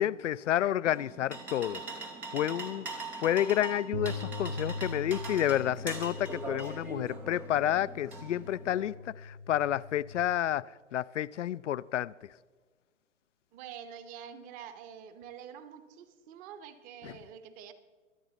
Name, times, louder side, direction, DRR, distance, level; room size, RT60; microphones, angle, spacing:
voice 1, 0.0-1.8 2.3-10.7 10.9-12.1 17.0-17.1, left 11 dB, 65° left, 0.5 m, -30 dB
sound 1, 0.9-8.8, right 3 dB, 5° right, 0.4 m, -42 dB
sound 2, 3.9-10.2, left 2 dB, 70° right, 4.2 m, -41 dB
voice 2, 13.5-17.7, right 8 dB, 20° right, 0.8 m, -47 dB
23.5 x 8.8 x 4.0 m
figure-of-eight pair, 125°, 39 cm